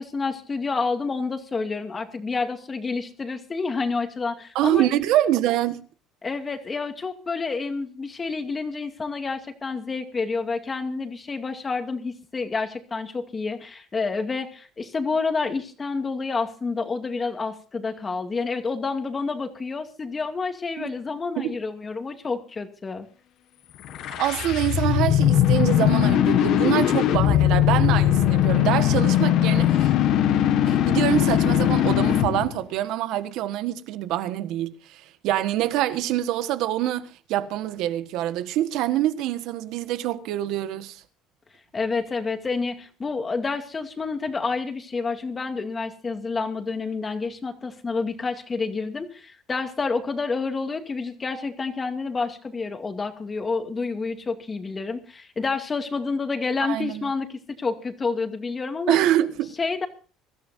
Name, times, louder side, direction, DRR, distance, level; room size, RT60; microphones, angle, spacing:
voice 1, 0.0-4.9 6.2-23.1 41.7-59.0 59.6-59.9, left 4 dB, 25° left, 2.3 m, -29 dB
voice 2, 4.5-5.8 20.8-20.9 21.4-21.5 24.2-29.9 30.7-41.0 56.6-57.1 58.9-59.5, right 13 dB, 70° right, 1.4 m, -25 dB
sound 1, 23.9-32.5, left 11 dB, 65° left, 1.6 m, -20 dB
24.5 x 13.5 x 2.7 m
cardioid pair, 125°, 0 cm